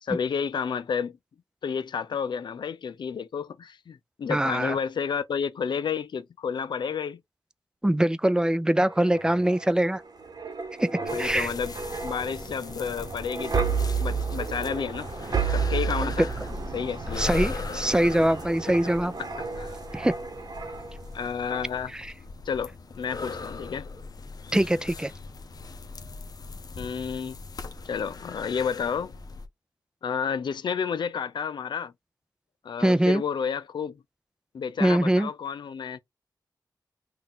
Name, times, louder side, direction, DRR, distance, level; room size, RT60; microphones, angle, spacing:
voice 1, 0.0-1.2 1.6-7.2 11.1-11.7 12.0-15.1 15.5-16.3 16.7-17.2 19.6-19.8 21.1-21.9 22.5-23.9 26.8-27.4 27.8-29.2 30.0-31.9 32.6-34.0 34.5-36.0, left 6 dB, 85° left, 0.5 m, -31 dB
voice 2, 4.3-4.7 7.8-10.0 10.8-10.9 11.2-11.5 16.0-16.1 17.2-19.1 19.9-20.1 21.9-22.1 24.5-25.1 32.8-33.2 34.8-35.3, right 1 dB, 10° right, 0.4 m, -23 dB
sound 1, 8.9-21.1 21.5-21.7, right 5 dB, 60° right, 1.0 m, -32 dB
sound 2, 11.1-29.5, left 4 dB, 60° left, 0.8 m, -39 dB
5.8 x 2.4 x 3.7 m
wide cardioid pair, 95°, 8 cm